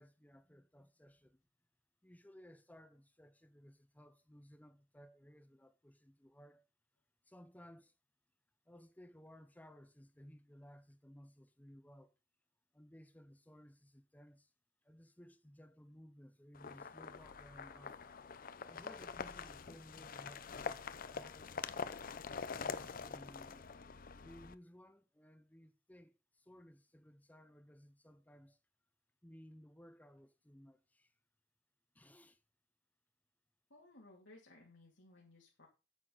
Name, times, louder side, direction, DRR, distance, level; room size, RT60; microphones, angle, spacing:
voice 1, 0.0-1.4 2.0-6.6 7.3-7.9 8.7-12.1 12.7-14.5 14.8-18.0 18.7-21.7 22.5-23.6 24.2-28.6 29.2-31.1 31.9-32.4, equal, 10° left, 0.8 m, -59 dB
sound 1, 16.5-24.5, left 5 dB, 50° left, 0.6 m, -45 dB
voice 2, 33.7-35.7, left 2 dB, 80° left, 2.6 m, -60 dB
9.1 x 8.3 x 3.9 m
head